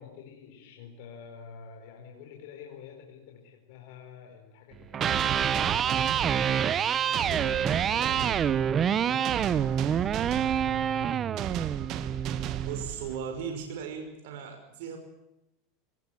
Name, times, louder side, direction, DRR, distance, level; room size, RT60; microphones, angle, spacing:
voice 1, 0.0-6.6 7.1-8.6, left 7 dB, 65° left, 2 dB, 4.4 m, -47 dB
Electric guitar, 4.8-12.9, right 8 dB, 30° right, 1.1 m, -27 dB
sound 1, 5.0-13.5, right 12 dB, 45° right, 1.6 m, -37 dB
voice 2, 12.6-15.0, right 7 dB, 70° right, 4 dB, 5.6 m, -37 dB
23.0 x 19.5 x 8.9 m, 0.86 s
supercardioid pair, 125°, 0 cm